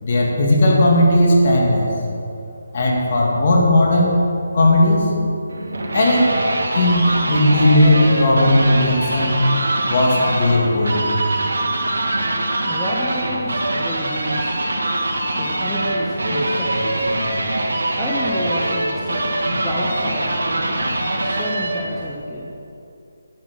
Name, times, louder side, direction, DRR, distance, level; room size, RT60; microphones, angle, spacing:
voice 1, 0.0-2.0 2.7-4.2 4.5-5.1 5.9-6.4 6.7-9.3 9.9-11.1, left 1 dB, 40° left, -1 dB, 2.0 m, -16 dB
sound 1, 5.5-22.0, right 1 dB, 85° right, 1.6 m, -23 dB
voice 2, 12.6-14.5 15.4-17.1 18.0-20.4 21.2-22.5, left 1 dB, 10° left, -6 dB, 0.7 m, -30 dB
10.5 x 6.0 x 6.2 m, 2.7 s
hypercardioid pair, 170°, 0 cm